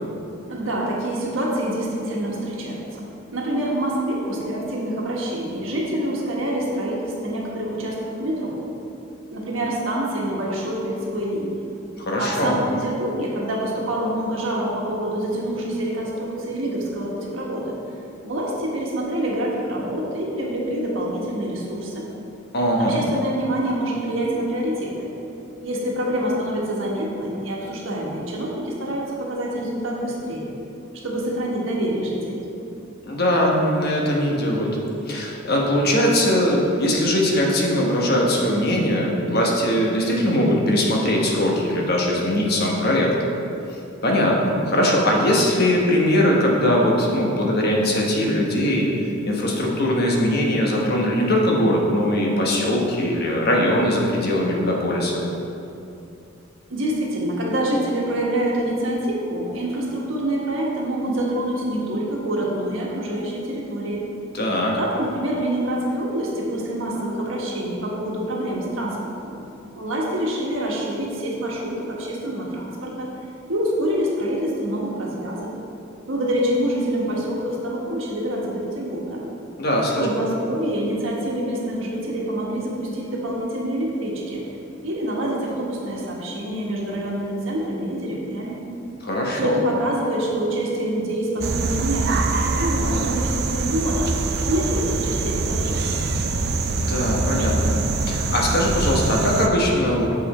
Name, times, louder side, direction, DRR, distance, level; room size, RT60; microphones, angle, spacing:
voice 1, 0.5-3.0 3.3-8.5 9.3-11.6 12.2-17.7 18.2-22.1 22.8-25.1 25.6-30.5 31.0-32.4 56.7-64.1 64.8-69.3 69.7-73.1 73.5-75.5 76.1-79.2 80.0-84.4 84.8-88.6 89.3-94.1 94.4-95.9, right 1 dB, 75° right, -3 dB, 1.4 m, -26 dB
voice 2, 12.0-12.6 22.5-23.0 33.0-34.8 35.1-43.1 44.0-48.9 49.3-55.2 64.3-64.8 79.6-80.1 89.0-89.6 96.7-97.8 98.1-100.2, left 1 dB, 50° left, -1 dB, 1.1 m, -21 dB
sound 1, 91.4-99.5, right 3 dB, 50° right, 0.5 m, -24 dB
7.4 x 5.9 x 4.2 m, 2.8 s
head